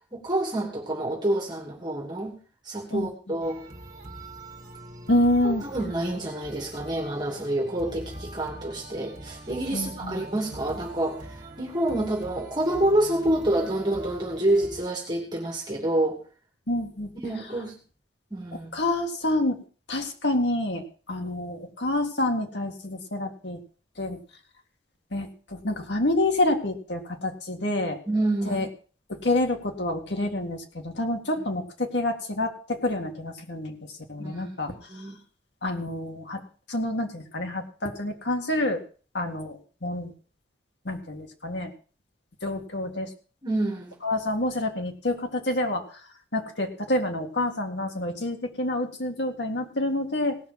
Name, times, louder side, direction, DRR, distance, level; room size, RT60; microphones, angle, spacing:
voice 1, 0.1-2.4 2.6-3.6 5.4-16.2 17.2-17.7 18.3-18.7 28.1-28.6 34.2-35.1 43.4-44.0, right 1 dB, 25° right, 0 dB, 2.6 m, -28 dB
voice 2, 2.9-3.4 5.1-5.6 9.7-10.2 16.7-17.1 18.7-19.6 19.9-23.6 24.0-24.2 25.1-28.0 28.5-28.7 29.1-35.0 35.6-36.4 36.7-38.8 39.1-40.1 40.9-41.7 42.4-43.1 44.0-45.9 46.3-50.4, left 1 dB, 80° left, 4 dB, 2.0 m, -28 dB
sound 1, 3.4-14.9, right 1 dB, 40° right, 2.2 m, -43 dB
18.0 x 6.1 x 5.9 m, 0.39 s
head